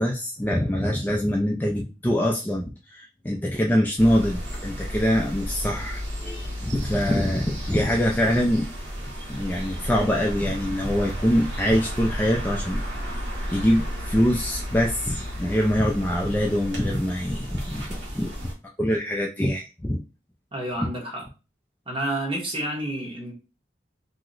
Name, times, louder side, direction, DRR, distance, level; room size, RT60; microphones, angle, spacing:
voice 1, 0.0-8.7 9.3-12.8 13.5-17.8 18.1-18.3 18.8-20.0, equal, 10° left, 0.3 m, -24 dB
sound 1, 4.0-18.5, equal, 75° right, 1.2 m, -33 dB
voice 2, 20.5-21.3 21.9-23.3, right 1 dB, 30° right, 1.1 m, -29 dB
2.8 x 2.1 x 3.8 m
head